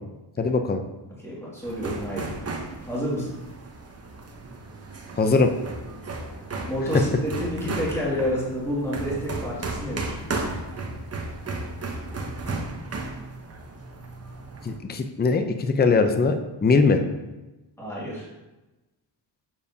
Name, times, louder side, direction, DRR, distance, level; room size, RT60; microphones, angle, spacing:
voice 1, 0.4-0.8 5.2-5.5 14.6-16.4 16.6-17.0, left 4 dB, 20° left, 7 dB, 0.6 m, -20 dB
voice 2, 1.2-2.4 2.8-3.4 6.7-10.2 17.8-18.3, equal, 5° left, -6 dB, 2.2 m, -29 dB
sound 1, 1.6-14.8, right 3 dB, 30° right, 0.9 m, -34 dB
7.2 x 6.5 x 2.8 m, 1.1 s
cardioid pair, 95°, 46 cm